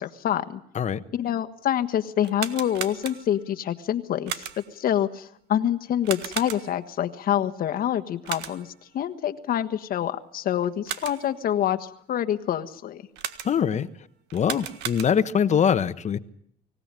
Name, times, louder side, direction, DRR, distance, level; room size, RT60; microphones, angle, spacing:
voice 1, 0.0-0.6 1.1-13.0, left 10 dB, 60° left, 7 dB, 1.4 m, -26 dB
sound 1, 2.2-3.5 4.3-4.8 6.0-6.9 8.2-8.8 10.6-11.4 13.2-13.8 14.3-15.4, right 10 dB, 85° right, 1.7 m, -36 dB
voice 2, 13.4-13.9 14.3-16.2, left 8 dB, 45° left, 13 dB, 1.2 m, -23 dB
25.0 x 17.0 x 9.0 m, 0.69 s
cardioid pair, 110°, 17 cm